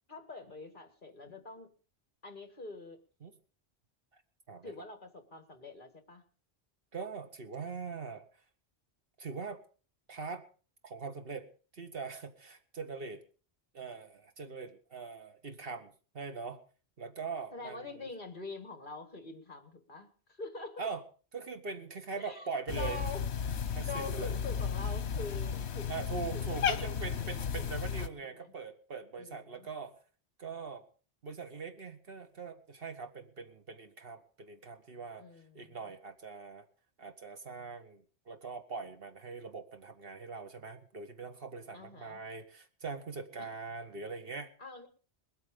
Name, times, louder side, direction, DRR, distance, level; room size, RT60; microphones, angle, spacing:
voice 1, 0.1-1.7 2.2-3.0 4.6-6.2 17.5-20.9 22.2-22.5 22.8-23.2 23.9-25.9 26.3-28.5 29.2-29.7 35.2-35.8 41.7-42.2 43.4-43.5 44.6-44.9, left 3 dB, 50° left, 7 dB, 2.1 m, -45 dB
voice 2, 6.9-8.2 9.2-9.6 10.1-10.4 10.8-11.5 11.7-13.2 13.7-16.6 17.0-17.9 20.8-21.0 21.3-23.0 23.7-24.4 25.9-29.9 30.4-30.8 31.2-35.2 35.5-36.7 37.0-44.5, right 4 dB, 60° right, 7 dB, 1.6 m, -42 dB
Cat, 22.7-28.1, left 7 dB, 90° left, 1.1 m, -34 dB
21.5 x 8.3 x 5.2 m, 0.39 s
omnidirectional pair, 1.1 m